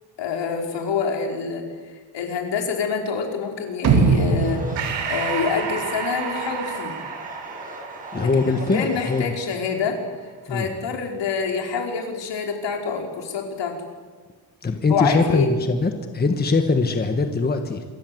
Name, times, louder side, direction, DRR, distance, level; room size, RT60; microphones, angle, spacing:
voice 1, 0.2-1.6 2.1-4.6 5.1-7.0 8.2-10.0 10.5-13.8 14.9-15.5, left 5 dB, 70° left, 2 dB, 5.1 m, -26 dB
sound 1, 3.8-6.0 6.4-6.5, right 4 dB, 55° right, 2.9 m, -21 dB
sound 2, 3.9-9.2, right 1 dB, 20° right, 6.8 m, -40 dB
Breathing, 4.8-9.6, right 7 dB, 85° right, 5.2 m, -32 dB
voice 2, 8.1-9.3 10.5-10.7 14.6-17.8, left 3 dB, 20° left, 6 dB, 1.5 m, -22 dB
27.0 x 24.0 x 8.0 m, 1.5 s
wide cardioid pair, 170°, 45 cm